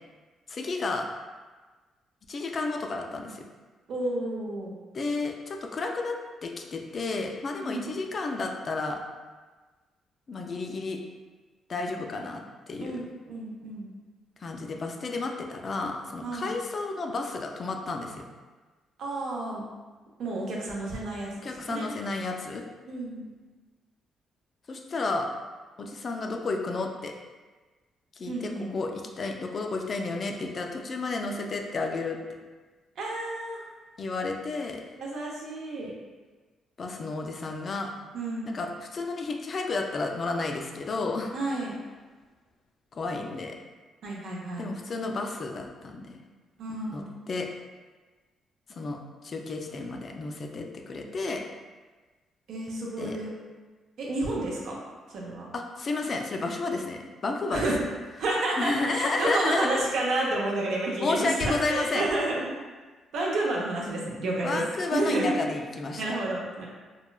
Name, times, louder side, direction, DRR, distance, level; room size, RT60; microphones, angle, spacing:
voice 1, 0.5-1.1 2.3-3.5 4.9-6.1 6.4-9.0 10.3-11.0 11.7-13.0 14.4-18.2 21.4-22.6 24.7-25.3 25.8-27.1 28.2-32.2 34.0-34.8 36.8-37.9 38.4-41.3 42.9-43.6 44.6-46.2 46.9-47.5 48.7-49.0 49.2-51.4 53.0-53.2 55.5-57.7 58.6-59.7 61.0-62.1 64.4-66.2, left 3 dB, 45° left, 2 dB, 0.3 m, -32 dB
voice 2, 3.9-4.8 7.6-7.9 12.8-13.9 16.2-16.5 19.0-19.6 20.2-21.9 22.9-23.3 28.3-28.8 33.0-33.6 35.0-35.9 38.1-38.6 41.3-41.7 44.0-44.7 46.6-47.1 52.5-53.3 54.0-54.8 55.1-55.5 57.5-57.7 58.2-61.3 61.7-62.5 63.1-64.6 64.9-65.3 66.0-66.7, right 2 dB, 70° right, -3 dB, 0.6 m, -30 dB
3.0 x 2.2 x 2.2 m, 1.3 s
cardioid pair, 90°, 0 cm